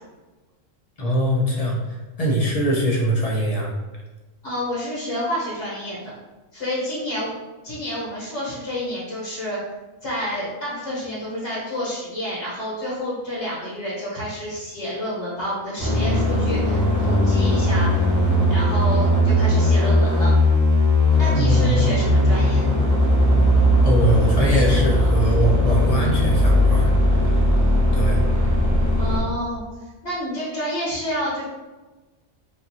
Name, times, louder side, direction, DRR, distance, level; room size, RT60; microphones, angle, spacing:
voice 1, 1.0-3.7 21.3-21.7 23.8-27.2 27.9-28.2, equal, 40° left, -2 dB, 0.6 m, -22 dB
voice 2, 4.4-6.1 6.5-7.3 7.6-9.6 10.0-17.9 18.5-20.3 21.2-22.6 29.0-29.6 30.0-31.4, equal, 60° left, -7 dB, 1.4 m, -29 dB
sound 1, 15.8-29.2, left 1 dB, 15° left, 0.9 m, -18 dB
5.0 x 2.6 x 2.8 m, 1.2 s
omnidirectional pair, 1.4 m